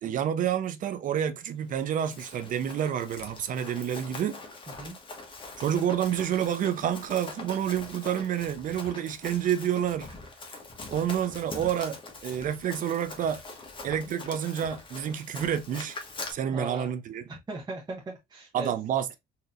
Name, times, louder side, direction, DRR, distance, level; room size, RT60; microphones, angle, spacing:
voice 1, 0.0-4.4 5.6-10.1 10.9-13.4 13.8-16.0 16.3-17.3 18.5-19.2, right 9 dB, 50° right, 0.5 m, -29 dB
Run, 1.8-16.3, left 3 dB, 30° left, 1.1 m, -43 dB
voice 2, 16.4-16.9 17.3-18.7, right 2 dB, 25° right, 0.9 m, -38 dB
4.1 x 2.8 x 2.5 m
cardioid pair, 110°, 17 cm